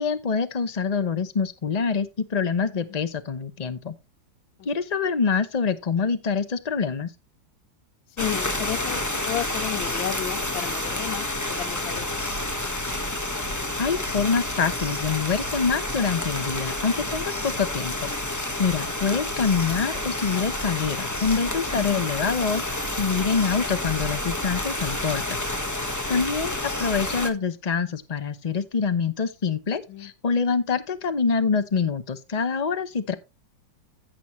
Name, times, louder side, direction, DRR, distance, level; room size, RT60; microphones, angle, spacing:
voice 1, 0.0-3.9 4.6-7.1 13.8-25.4 26.1-33.1, left 5 dB, 65° left, 0.4 m, -26 dB
voice 2, 8.1-12.1 21.8-22.0 26.1-26.2 29.9-30.1, left 11 dB, 85° left, 1.5 m, -33 dB
sound 1, 8.2-27.3, left 1 dB, 15° left, 0.8 m, -29 dB
15.0 x 6.1 x 3.1 m
omnidirectional pair, 2.1 m